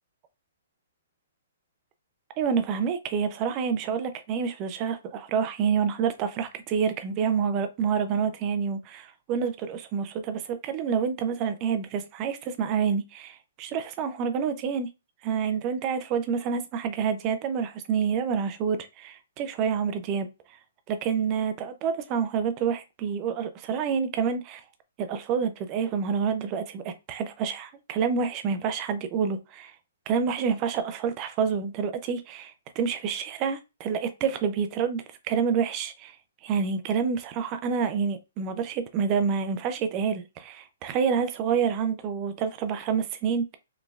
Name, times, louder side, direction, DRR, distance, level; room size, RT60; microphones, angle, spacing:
voice 1, 2.4-14.9 15.2-20.3 20.9-24.6 25.0-29.7 30.1-36.2 36.4-43.6, right 6 dB, 20° right, 0.4 m, -28 dB
4.0 x 3.2 x 2.3 m
hypercardioid pair, 175°, 0 cm